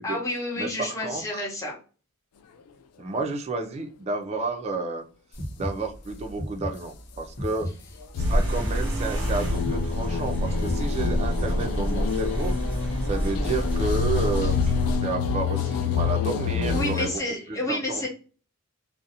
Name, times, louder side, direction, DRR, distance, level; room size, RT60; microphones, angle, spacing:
voice 1, 0.0-1.8 14.4-14.5 16.7-18.1, left 2 dB, 15° left, -3 dB, 0.6 m, -30 dB
voice 2, 0.6-1.4 3.0-5.0 5.6-7.7 8.2-12.5 13.0-17.2 17.5-18.1, right 3 dB, 30° right, 4 dB, 0.3 m, -31 dB
sound 1, 5.3-12.1, equal, 35° left, 1.0 m, -36 dB
sound 2, 8.2-17.2, left 7 dB, 85° left, 0.3 m, -28 dB
sound 3, 8.2-15.0, equal, 10° right, 0.9 m, -27 dB
2.5 x 2.0 x 2.6 m, 0.37 s
head